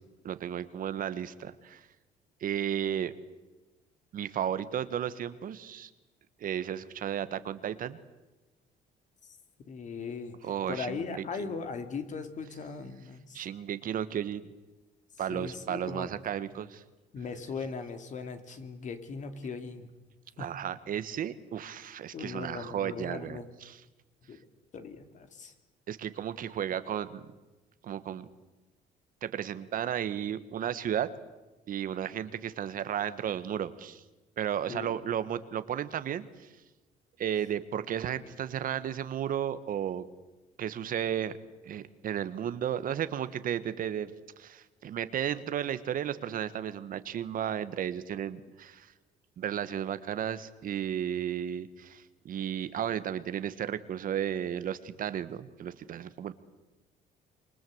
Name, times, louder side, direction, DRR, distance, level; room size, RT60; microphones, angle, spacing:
voice 1, 0.2-1.8 2.4-3.1 4.1-5.9 6.4-8.0 10.4-11.5 13.3-14.5 15.2-16.8 20.4-23.8 25.9-27.2 27.8-28.2 29.2-31.1 31.7-34.0 34.4-36.5 37.2-40.1 40.6-41.4 41.6-48.9 49.4-56.3, right 9 dB, 55° right, 13 dB, 1.5 m, -34 dB
voice 2, 9.6-13.4 15.3-16.1 17.1-19.9 20.4-20.5 22.1-23.5 24.3-24.5 24.7-25.5 34.7-35.0, left 5 dB, 45° left, 8 dB, 3.0 m, -39 dB
27.5 x 23.5 x 8.0 m, 1.1 s
cardioid pair, 110°, 17 cm